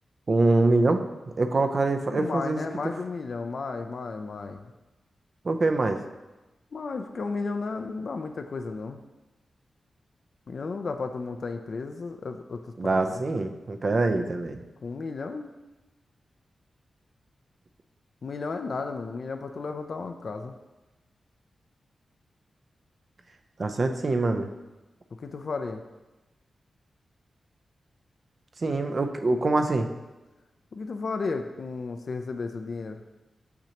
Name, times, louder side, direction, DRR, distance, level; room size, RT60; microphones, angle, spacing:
voice 1, 0.3-1.0 1.4-2.6 5.4-6.0 12.8-14.6 23.6-24.5 28.6-29.9, right 2 dB, 50° right, 6 dB, 0.5 m, -24 dB
voice 2, 2.1-4.6 6.7-9.0 10.5-13.2 14.8-15.6 18.2-20.5 25.2-25.8 30.7-33.0, left 4 dB, 60° left, 6 dB, 0.4 m, -33 dB
6.3 x 5.8 x 2.9 m, 1.1 s
cardioid pair, 75°, 0 cm